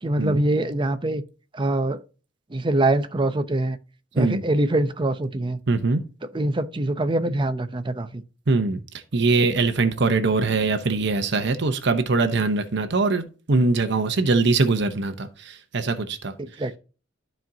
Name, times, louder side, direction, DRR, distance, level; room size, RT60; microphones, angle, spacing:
voice 1, 0.0-1.2 1.5-2.0 2.5-3.8 4.1-5.6 6.2-8.2 16.4-16.8, right 2 dB, 25° right, 0.7 m, -24 dB
voice 2, 5.7-6.0 8.5-8.8 9.1-16.3, right 3 dB, 65° right, 0.9 m, -22 dB
13.0 x 4.5 x 2.7 m
head